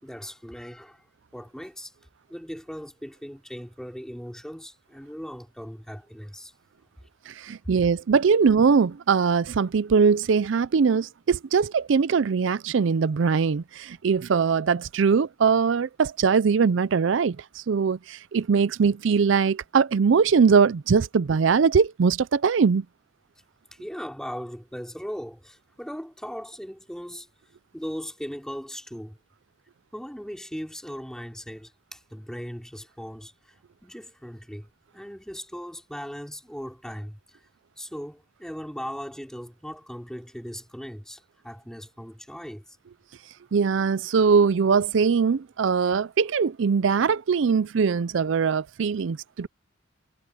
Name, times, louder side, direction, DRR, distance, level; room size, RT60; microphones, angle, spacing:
voice 1, 0.0-1.9 2.3-6.5 7.4-7.5 23.7-27.3 27.7-29.2 29.9-37.5 37.8-42.8, equal, 5° left, 2.9 m, -38 dB
voice 2, 7.3-22.8 43.5-49.5, right 5 dB, 65° right, 0.4 m, -21 dB
head